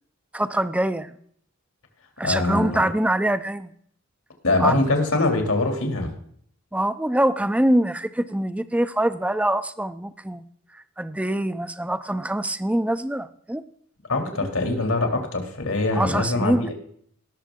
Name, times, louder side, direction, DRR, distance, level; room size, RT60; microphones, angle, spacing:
voice 1, 0.3-1.2 2.2-3.7 4.6-4.9 6.7-10.4 10.7-13.6 14.4-14.5 15.9-16.7, right 1 dB, 5° right, 13 dB, 0.5 m, -24 dB
voice 2, 2.2-2.9 4.4-6.1 14.1-16.7, left 2 dB, 85° left, 3 dB, 2.7 m, -23 dB
18.5 x 6.8 x 3.7 m, 0.63 s
head